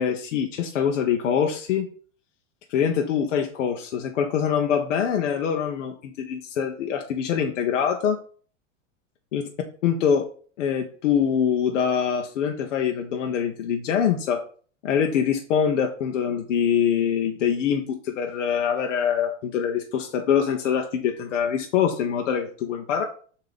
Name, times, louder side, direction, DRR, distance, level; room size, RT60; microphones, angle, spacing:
voice 1, 0.0-1.9 2.7-8.2 9.3-9.4 9.8-10.3 10.6-14.4 14.8-23.0, left 8 dB, 75° left, 3 dB, 0.9 m, -24 dB
6.7 x 2.9 x 5.0 m, 0.44 s
hypercardioid pair, 95°, 37 cm